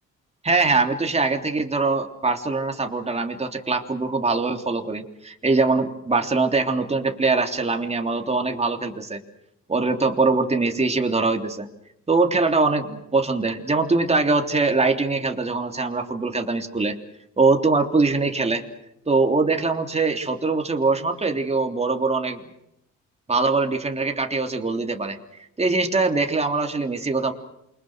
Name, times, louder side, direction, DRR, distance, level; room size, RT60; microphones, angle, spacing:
voice 1, 0.4-9.2 9.7-11.7 12.1-17.0 17.4-18.7 19.1-22.4 23.3-25.2 25.6-27.3, right 3 dB, 20° right, 4 dB, 3.3 m, -22 dB
29.0 x 24.5 x 6.3 m, 0.78 s
cardioid pair, 90°, 30 cm